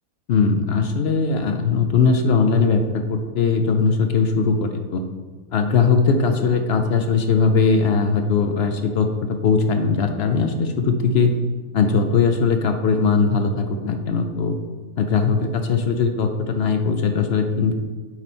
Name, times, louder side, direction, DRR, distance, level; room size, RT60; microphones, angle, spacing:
voice 1, 0.3-5.0 5.5-11.4 11.7-14.6 15.0-17.7, left 5 dB, 65° left, 6 dB, 0.6 m, -20 dB
7.0 x 4.4 x 4.2 m, 1.4 s
omnidirectional pair, 1.6 m